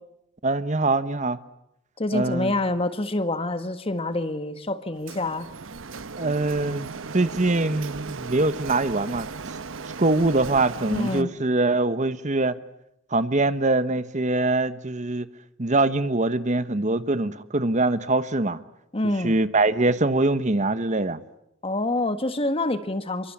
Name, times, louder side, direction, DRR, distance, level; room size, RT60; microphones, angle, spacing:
voice 1, 0.4-1.4 2.1-2.5 6.2-6.9 7.1-9.3 10.0-12.6 13.1-15.3 15.6-18.6 19.0-21.2, right 2 dB, 35° right, 13 dB, 1.1 m, -23 dB
voice 2, 2.0-5.5 10.9-11.3 18.9-19.4 21.6-23.3, left 2 dB, 30° left, 10 dB, 1.7 m, -26 dB
Printer, 5.1-11.2, right 4 dB, 75° right, 1.0 m, -36 dB
29.0 x 24.0 x 8.6 m, 0.82 s
head